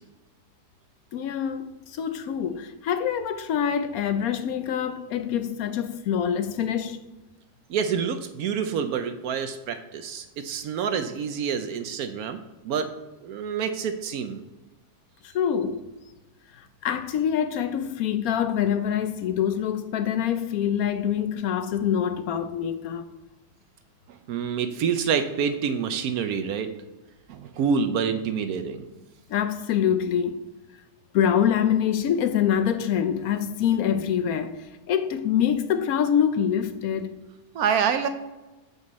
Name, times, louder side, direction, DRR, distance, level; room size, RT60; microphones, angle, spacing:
voice 1, 1.1-7.0 15.2-15.9 16.5-23.1 29.3-30.4 31.1-37.1, left 9 dB, 65° left, 1.0 m, -25 dB
voice 2, 7.7-12.9 13.2-14.4 24.1-26.7 27.3-28.8 37.5-38.1, right 7 dB, 70° right, 1.0 m, -27 dB
8.0 x 5.3 x 4.1 m
omnidirectional pair, 1.8 m